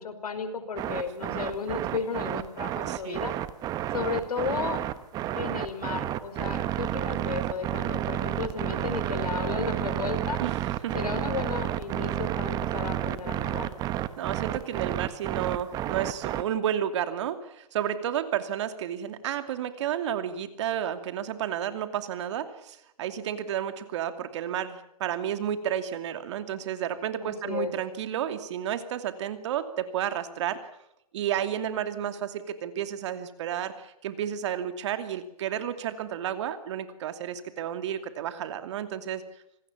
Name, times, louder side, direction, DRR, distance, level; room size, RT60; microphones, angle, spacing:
voice 1, 0.0-3.3 3.9-4.8 5.3-10.4 10.9-13.7 27.2-27.7, left 5 dB, 80° left, 9 dB, 5.1 m, -33 dB
sound 1, 0.8-16.4, right 13 dB, 20° right, 1.1 m, -31 dB
voice 2, 2.9-3.2 10.4-10.5 10.8-10.9 14.2-30.6 31.1-39.2, right 10 dB, 50° right, 10 dB, 2.7 m, -31 dB
26.5 x 19.5 x 7.3 m, 0.79 s
hypercardioid pair, 145°, 19 cm